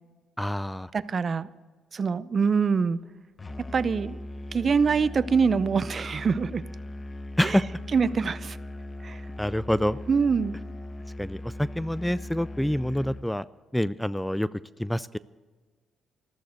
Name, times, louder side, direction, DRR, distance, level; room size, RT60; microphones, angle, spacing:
voice 1, 0.4-0.9 7.4-7.6 9.4-10.0 11.2-13.5 13.7-14.5 14.8-15.2, equal, 5° left, 18 dB, 0.4 m, -26 dB
voice 2, 0.9-1.5 1.9-3.0 3.7-4.2 4.5-6.6 7.4-7.6 7.9-8.6 9.0-9.2 10.1-10.5, right 5 dB, 40° right, 16 dB, 0.6 m, -24 dB
Musical instrument, 3.4-13.3, left 1 dB, 20° left, 0.9 m, -39 dB
14.0 x 13.5 x 6.5 m, 1.4 s
cardioid pair, 90°, 0 cm